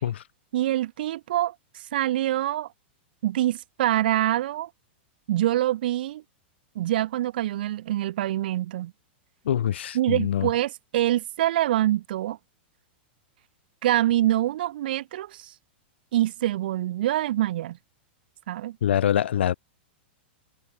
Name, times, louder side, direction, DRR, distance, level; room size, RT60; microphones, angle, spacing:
voice 1, 0.5-2.7 3.2-4.7 5.3-6.2 6.7-8.9 9.9-12.4 13.8-15.5 16.1-17.8 18.5-18.8, right 13 dB, 60° right, 0.8 m, -25 dB
voice 2, 9.4-10.5 18.8-19.5, left 10 dB, 85° left, 3.6 m, -24 dB
supercardioid pair, 170°, 6 cm